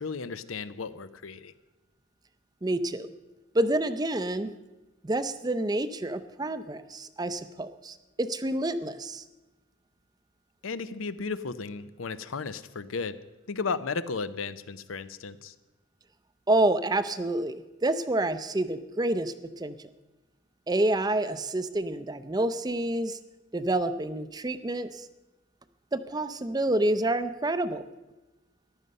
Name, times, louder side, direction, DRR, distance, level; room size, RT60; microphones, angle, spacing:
voice 1, 0.0-1.5 10.6-13.2 13.5-15.5, left 4 dB, 85° left, 14 dB, 0.7 m, -34 dB
voice 2, 2.6-3.1 3.5-4.5 5.0-9.2 16.5-19.7 20.7-23.2 23.5-25.0 25.9-27.8, right 1 dB, 20° right, 12 dB, 0.5 m, -28 dB
14.5 x 11.0 x 5.4 m, 1.1 s
head